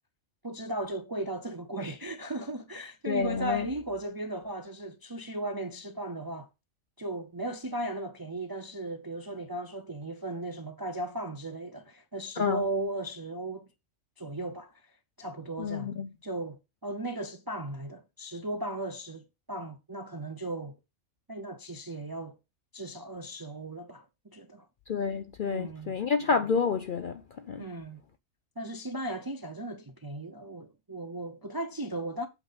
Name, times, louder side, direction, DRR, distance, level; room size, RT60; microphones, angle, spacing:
voice 1, 0.4-6.5 7.0-13.7 14.2-14.8 15.2-15.9 16.2-20.8 21.3-22.4 22.7-24.7 25.5-25.9 27.6-28.0 28.6-32.3, right 1 dB, 30° right, 0.4 m, -36 dB
voice 2, 3.1-3.7 12.4-12.6 15.6-16.1 24.9-27.2 27.5-27.6, left 5 dB, 60° left, 0.5 m, -29 dB
8.3 x 3.7 x 5.5 m
omnidirectional pair, 1.4 m